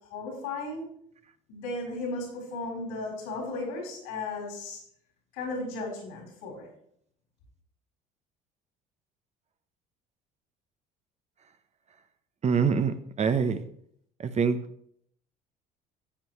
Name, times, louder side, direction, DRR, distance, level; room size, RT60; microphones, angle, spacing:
voice 1, 0.1-0.9 1.5-4.8 5.3-6.7, left 2 dB, 75° left, 4.0 m, -35 dB
voice 2, 12.4-13.6 14.2-14.6, right 6 dB, 35° right, 0.8 m, -25 dB
10.0 x 7.9 x 3.1 m
hypercardioid pair, 65°, 19 cm